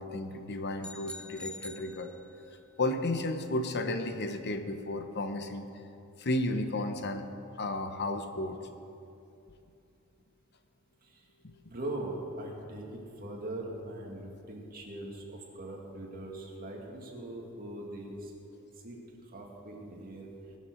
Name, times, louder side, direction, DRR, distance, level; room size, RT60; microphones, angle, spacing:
voice 1, 0.0-2.1 2.8-5.7 6.2-7.3 7.6-8.6 11.4-11.5, left 2 dB, 50° left, 7 dB, 0.9 m, -33 dB
sound 1, 0.8-2.6, left 2 dB, 5° left, 0.5 m, -45 dB
voice 2, 11.7-18.3 18.8-20.3, right 1 dB, 45° right, -1 dB, 2.2 m, -41 dB
21.0 x 7.5 x 6.3 m, 2.7 s
head